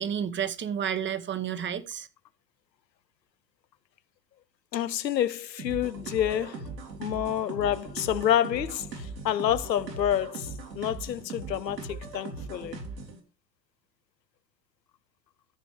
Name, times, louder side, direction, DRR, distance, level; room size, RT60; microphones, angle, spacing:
voice 1, 0.0-2.1, right 8 dB, 25° right, 1.0 m, -31 dB
voice 2, 4.7-6.7 7.0-12.8, left 10 dB, 80° left, 0.7 m, -28 dB
sound 1, 5.6-13.2, right 3 dB, 80° right, 3.3 m, -39 dB
13.0 x 5.2 x 4.7 m
figure-of-eight pair, 85°, 49 cm